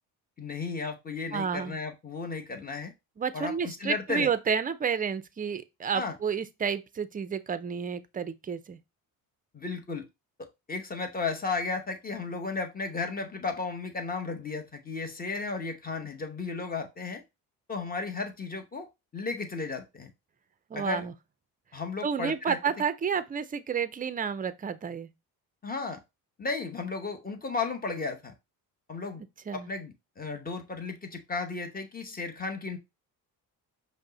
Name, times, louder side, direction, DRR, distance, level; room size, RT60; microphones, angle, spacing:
voice 1, 0.4-2.9 3.3-4.3 5.9-6.1 9.5-10.0 10.4-17.2 17.7-18.9 19.1-20.1 20.7-21.1 21.7-22.6 25.6-26.0 26.4-28.3 28.9-29.2 29.5-32.8, left 4 dB, 25° left, 1.0 m, -34 dB
voice 2, 1.3-1.8 3.2-8.8 20.7-21.1 22.0-25.1 29.5-29.7, right 6 dB, 25° right, 0.4 m, -30 dB
5.2 x 2.1 x 3.9 m
cardioid pair, 90°, 38 cm